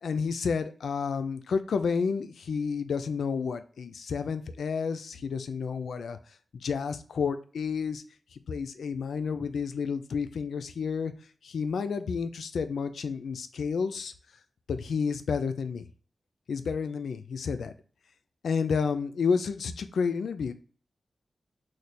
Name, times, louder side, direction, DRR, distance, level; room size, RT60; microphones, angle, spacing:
voice 1, 0.0-6.2 6.6-8.0 8.3-11.1 11.4-14.1 14.7-15.8 16.5-17.7 18.4-20.5, left 5 dB, 85° left, 10 dB, 0.3 m, -30 dB
3.2 x 2.1 x 4.1 m, 0.41 s
wide cardioid pair, 95°, 0 cm